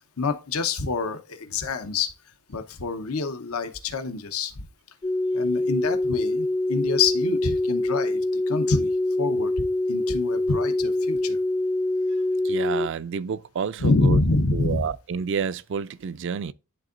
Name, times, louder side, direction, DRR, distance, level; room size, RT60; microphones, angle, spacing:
voice 1, 0.2-2.1 2.5-4.6 5.3-8.2 8.5-8.9 9.2-11.4 13.8-14.9, left 3 dB, 80° left, 0.8 m, -26 dB
sound 1, 5.0-12.9, left 2 dB, 20° left, 0.4 m, -25 dB
voice 2, 12.4-14.2 14.5-16.5, right 6 dB, 55° right, 0.4 m, -29 dB
11.0 x 3.7 x 2.4 m
head